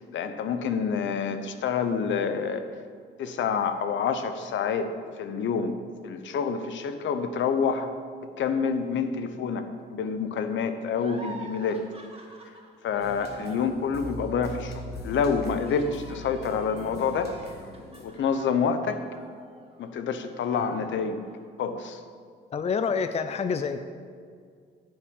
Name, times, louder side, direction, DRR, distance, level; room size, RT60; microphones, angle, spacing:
voice 1, 0.1-2.7 3.2-4.9 5.2-5.7 6.0-7.9 8.4-9.6 9.9-11.8 12.8-17.3 18.0-19.0 19.8-21.2 21.6-22.0, left 6 dB, 70° left, 9 dB, 0.9 m, -27 dB
sound 1, 10.9-20.0 20.4-21.4, right 2 dB, 30° right, 1.7 m, -47 dB
sound 2, 13.0-18.1, left 2 dB, 55° left, 2.0 m, -41 dB
voice 2, 22.5-23.8, left 5 dB, 35° left, 9 dB, 0.5 m, -27 dB
9.7 x 7.2 x 5.3 m, 2.1 s
cardioid pair, 90°, 20 cm